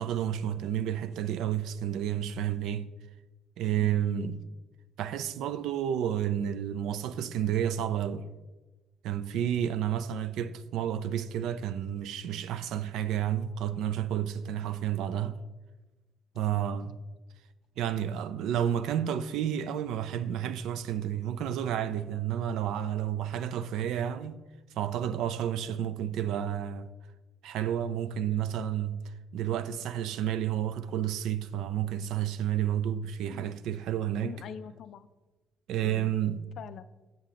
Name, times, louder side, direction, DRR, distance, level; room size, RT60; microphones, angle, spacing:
voice 1, 0.0-2.9 3.6-4.4 5.0-8.2 9.0-15.4 16.4-17.0 17.8-24.4 24.7-26.9 27.4-34.3 35.7-36.4, right 10 dB, 85° right, 0.4 m, -31 dB
voice 2, 3.8-4.3 16.3-16.8 25.7-25.8 33.3-33.6 34.2-35.1 35.8-36.2 36.6-36.9, left 8 dB, 55° left, 0.4 m, -45 dB
7.5 x 7.2 x 3.7 m
cardioid pair, 175°, 0 cm